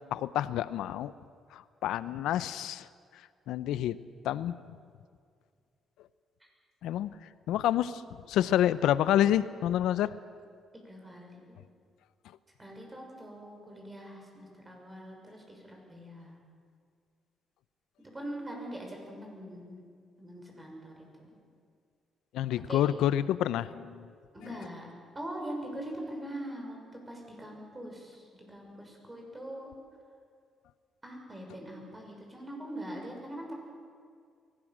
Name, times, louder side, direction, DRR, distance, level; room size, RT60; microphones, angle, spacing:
voice 1, 0.1-1.1 1.5-2.9 3.5-4.0 4.2-4.5 6.8-7.1 7.5-8.0 8.3-10.1 22.3-24.1 24.4-24.7, left 11 dB, 85° left, 15 dB, 0.7 m, -28 dB
voice 2, 10.7-11.6 12.6-16.4 18.0-19.8 20.2-21.4 22.7-22.8 24.3-24.9 25.1-29.7 31.0-33.5, right 1 dB, 20° right, 1 dB, 6.4 m, -42 dB
23.0 x 17.5 x 7.5 m, 2.1 s
cardioid pair, 90°, 0 cm